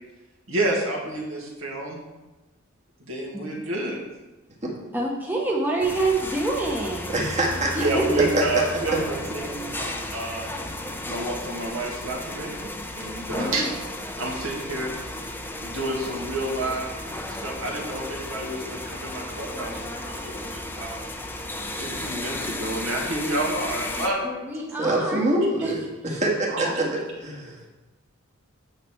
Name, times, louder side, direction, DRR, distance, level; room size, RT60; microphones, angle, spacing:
voice 1, 0.5-2.0 3.1-4.0 7.7-10.5 11.1-13.7 14.2-14.9 15.6-16.9 17.3-21.0 21.8-24.3 26.5-26.7, right 2 dB, 70° right, -3 dB, 2.3 m, -29 dB
voice 2, 4.9-7.2 7.8-8.1 13.1-13.7 24.0-25.3 25.6-25.8 26.1-26.2 26.8-26.9, right 2 dB, 10° right, -3 dB, 1.0 m, -27 dB
sound 1, 5.8-24.1, left 1 dB, 10° left, 0.6 m, -34 dB
voice 3, 7.1-7.9 8.2-8.8 24.8-25.8 26.1-27.7, right 1 dB, 35° right, -2 dB, 1.8 m, -25 dB
9.1 x 6.7 x 4.5 m, 1.1 s
head